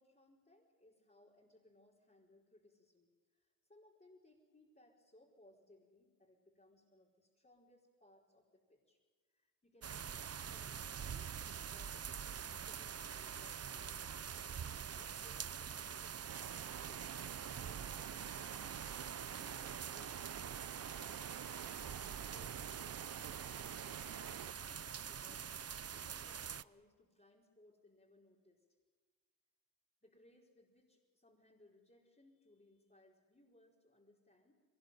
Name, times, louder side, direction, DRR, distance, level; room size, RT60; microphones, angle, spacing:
voice 1, 0.0-9.0 9.3-14.3 14.6-21.0 21.8-28.6 30.0-34.6, left 1 dB, 25° left, -4 dB, 4.8 m, -67 dB
sound 1, 9.8-26.6, right 8 dB, 45° right, 0.6 m, -45 dB
sound 2, 16.3-24.5, right 10 dB, 85° right, 0.7 m, -50 dB
22.5 x 20.0 x 9.3 m, 1.5 s
cardioid pair, 60°, 34 cm